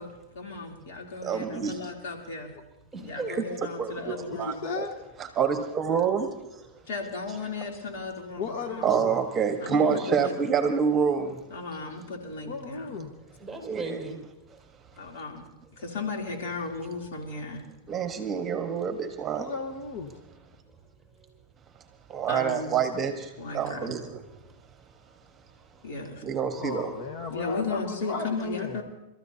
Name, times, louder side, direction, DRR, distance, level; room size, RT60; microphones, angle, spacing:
voice 1, 0.0-2.5 3.0-4.6 6.9-8.9 9.6-10.4 11.5-13.0 15.0-15.5 15.8-17.6 22.3-22.7 23.4-24.0 25.8-26.2 27.3-28.8, left 3 dB, 75° left, 1 dB, 3.2 m, -35 dB
voice 2, 1.2-1.8 3.3-3.4 3.8-4.9 5.4-6.3 8.8-11.4 13.6-14.0 17.9-19.5 22.1-24.2 26.2-26.9, right 6 dB, 25° right, 6 dB, 1.4 m, -27 dB
voice 3, 2.9-3.4 13.2-14.2 14.5-14.6 17.2-17.3 19.0-19.1 20.8-20.9 21.2-21.3 23.5-24.6 24.9-25.2 25.5-25.9, right 3 dB, 5° left, 0 dB, 5.4 m, -41 dB
voice 4, 4.3-5.0 8.4-9.2 12.4-13.1 19.3-20.2 26.6-28.8, left 5 dB, 60° left, 5 dB, 1.5 m, -35 dB
30.0 x 13.5 x 2.9 m, 0.93 s
hypercardioid pair, 125°, 0 cm